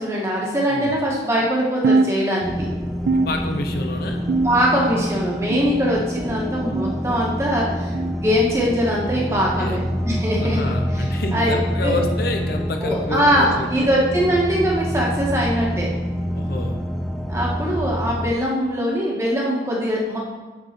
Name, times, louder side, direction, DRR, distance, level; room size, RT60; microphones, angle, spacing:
voice 1, 0.0-2.7 4.4-10.6 10.9-11.0 11.3-12.0 12.8-15.9 17.3-20.2, equal, 15° right, -4 dB, 1.6 m, -22 dB
sound 1, 1.8-2.7 3.1-3.9 4.3-4.9 5.5-6.1 6.7-7.1 7.9-8.2 9.2-9.4 10.4-10.6 11.6-11.8 12.8-13.0 14.0-14.2 15.3-15.4 16.5-16.6, right 3 dB, 80° right, 0.3 m, -24 dB
sound 2, 2.4-18.3, equal, ahead, 0.3 m, -27 dB
voice 2, 3.1-4.2 9.3-9.8 10.4-13.9 16.3-16.8, left 2 dB, 55° left, 4 dB, 0.7 m, -29 dB
8.0 x 4.2 x 6.0 m, 1.2 s
head